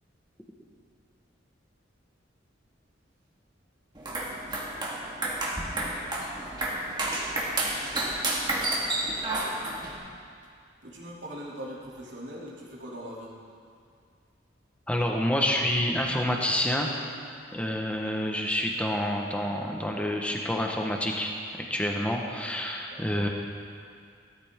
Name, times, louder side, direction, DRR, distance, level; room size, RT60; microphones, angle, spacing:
sound 1, 4.0-9.9, right 2 dB, 25° right, 1.8 m, -30 dB
voice 1, 10.8-13.3 22.9-23.2, equal, 70° right, -5 dB, 2.8 m, -41 dB
voice 2, 14.9-16.9 17.5-21.3 21.7-23.3, left 1 dB, 5° left, 0 dB, 1.3 m, -28 dB
16.0 x 13.5 x 3.7 m, 2.3 s
head